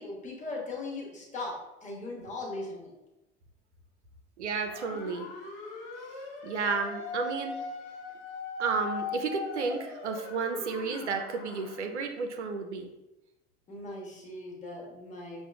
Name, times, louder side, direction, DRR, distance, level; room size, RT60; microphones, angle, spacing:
voice 1, 0.0-1.5 1.8-2.9 13.7-15.4, left 2 dB, 20° left, -2 dB, 1.0 m, -39 dB
voice 2, 4.4-5.3 6.4-7.5 8.6-12.9, right 4 dB, 75° right, 5 dB, 0.5 m, -32 dB
sound 1, 4.7-11.9, left 3 dB, 55° left, 0.7 m, -40 dB
5.6 x 2.2 x 2.4 m, 0.95 s
figure-of-eight pair, 70°, 35 cm